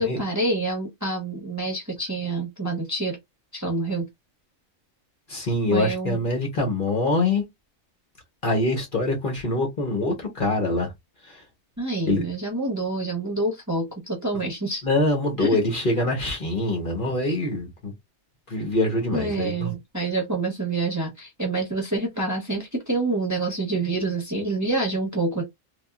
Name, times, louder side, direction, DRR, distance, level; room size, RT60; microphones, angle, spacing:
voice 1, 0.0-3.2 3.5-4.1 5.7-6.2 11.8-14.9 15.4-15.6 19.1-25.4, right 2 dB, 15° right, 0.8 m, -27 dB
voice 2, 5.3-7.4 8.4-10.9 12.1-12.2 14.8-17.9 18.5-19.7, left 2 dB, 45° left, 1.0 m, -24 dB
3.4 x 2.3 x 2.3 m
omnidirectional pair, 1.4 m